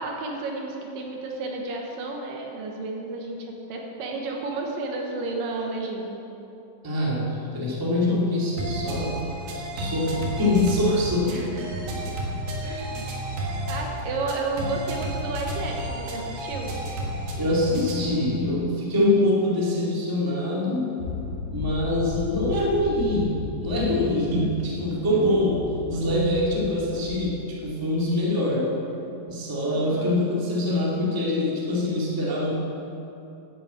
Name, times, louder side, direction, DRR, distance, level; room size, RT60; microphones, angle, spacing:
voice 1, 0.0-6.2 11.2-12.0 12.6-13.1 13.4-16.7 25.1-25.5 29.7-30.1, right 3 dB, 75° right, 0 dB, 2.9 m, -32 dB
voice 2, 6.8-9.2 9.7-11.3 17.4-21.0 21.5-28.7 29.3-32.5, left 1 dB, 10° right, -5 dB, 1.7 m, -24 dB
sound 1, 8.6-18.2, right 1 dB, 90° right, 3.4 m, -32 dB
sound 2, 21.0-27.8, left 4 dB, 65° left, 2.7 m, -34 dB
11.5 x 7.7 x 8.3 m, 2.9 s
omnidirectional pair, 4.1 m